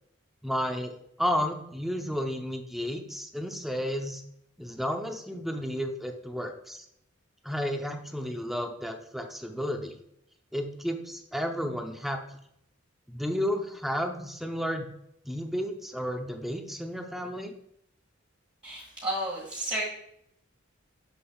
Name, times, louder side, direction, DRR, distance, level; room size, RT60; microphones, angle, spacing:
voice 1, 0.4-0.9 1.2-4.2 4.6-6.8 7.4-10.0 10.5-12.2 13.1-14.9 15.2-17.5, equal, ahead, 4 dB, 0.7 m, -32 dB
voice 2, 18.6-19.8, right 1 dB, 25° right, -7 dB, 1.9 m, -32 dB
7.3 x 6.8 x 2.4 m, 0.75 s
head